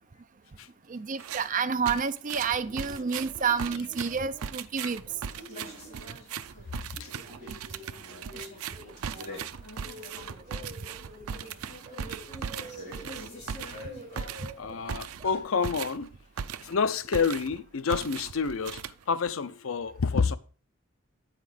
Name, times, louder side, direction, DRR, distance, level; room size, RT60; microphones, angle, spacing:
voice 1, 0.9-5.0, right 6 dB, 40° right, 0.5 m, -29 dB
sound 1, 1.2-1.5 1.9-16.8 17.1-17.6 17.9-19.3, right 7 dB, 90° right, 0.5 m, -38 dB
sound 2, 2.3-6.7 7.0-9.5 9.8-15.7, equal, 20° right, 3.7 m, -49 dB
sound 3, 5.2-14.4, left 1 dB, 35° left, 4.5 m, -47 dB
voice 2, 8.1-8.5 8.8-8.9 9.7-9.8 14.6-16.1 16.6-20.4, left 5 dB, 70° left, 0.5 m, -29 dB
8.3 x 5.9 x 4.9 m
head